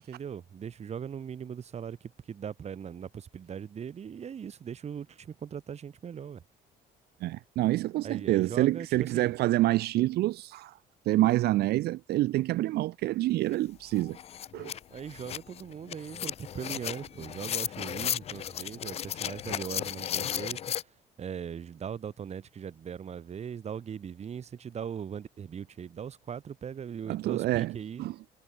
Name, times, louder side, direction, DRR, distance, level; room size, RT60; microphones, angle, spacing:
voice 1, 0.0-2.0 2.3-6.4 8.0-9.3 14.9-20.6 21.2-28.0, right 7 dB, 40° right, 1.8 m, -39 dB
voice 2, 7.2-10.8 11.1-14.2 14.5-14.7 27.1-28.2, right 16 dB, 70° right, 0.6 m, -27 dB
sound 1, 13.5-13.6 13.9-20.8, left 10 dB, 40° left, 0.3 m, -35 dB
cardioid pair, 110°, 17 cm